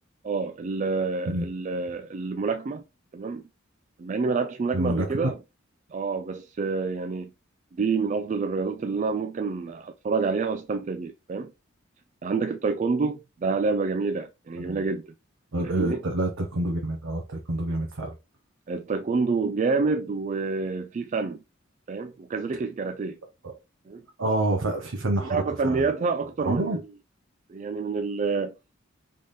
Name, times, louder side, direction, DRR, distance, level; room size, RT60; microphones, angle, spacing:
voice 1, 0.2-2.8 3.1-3.4 4.0-5.4 5.9-7.3 7.7-11.5 12.2-15.1 15.6-16.0 18.7-21.4 21.9-23.2 23.9-24.0 25.3-26.8 27.5-28.5, right 4 dB, 35° right, 0.3 m, -28 dB
voice 2, 4.7-5.3 14.6-14.8 15.5-18.1 23.4-23.5 24.2-25.8 26.5-26.8, right 1 dB, 85° right, 0.9 m, -27 dB
3.6 x 3.3 x 4.0 m
head